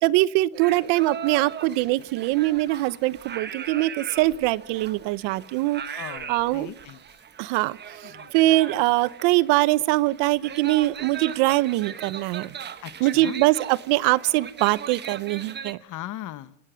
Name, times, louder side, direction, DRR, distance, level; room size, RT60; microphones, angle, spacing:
voice 1, 0.0-6.0 6.3-6.7 7.4-7.8 8.3-12.5 13.0-15.8, right 18 dB, 60° right, 20 dB, 0.8 m, -22 dB
sound 1, 0.6-15.7, right 7 dB, 20° right, 1.2 m, -39 dB
voice 2, 5.9-7.0 8.0-8.3 12.8-13.4 15.8-16.6, left 13 dB, 40° left, 15 dB, 1.2 m, -39 dB
27.5 x 17.0 x 6.3 m, 0.74 s
cardioid pair, 155°, 48 cm